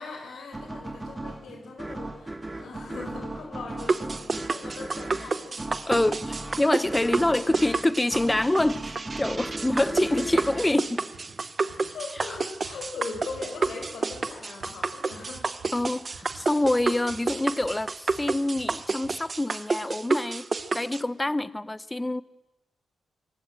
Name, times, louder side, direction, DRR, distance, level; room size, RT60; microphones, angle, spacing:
voice 1, 0.0-6.0 7.3-7.5 9.9-10.3 11.8-15.5 16.1-16.3, left 4 dB, 75° left, 4.4 m, -40 dB
sound 1, 0.5-11.8, right 2 dB, 20° right, 2.4 m, -37 dB
sound 2, 3.8-21.0, right 4 dB, 40° right, 1.0 m, -30 dB
voice 2, 5.9-11.1 15.7-20.5 20.7-22.2, left 1 dB, 15° left, 0.9 m, -26 dB
sound 3, 10.1-19.2 19.8-19.9 20.6-20.7, right 4 dB, 85° right, 5.2 m, -50 dB
24.0 x 19.0 x 7.6 m
cardioid pair, 60°, 0 cm